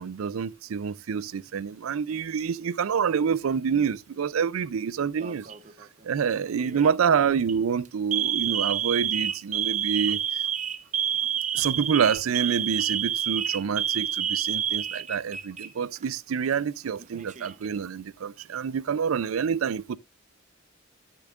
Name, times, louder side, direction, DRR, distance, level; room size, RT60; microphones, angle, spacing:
voice 1, 0.0-5.5 6.0-10.4 11.5-20.0, right 7 dB, 85° right, 0.4 m, -27 dB
Alarm, 5.2-5.7 6.6-6.9 7.3-7.5 8.1-15.7 16.0-16.1 17.0-17.7, right 9 dB, 35° right, 0.8 m, -28 dB
13.5 x 6.9 x 2.4 m
head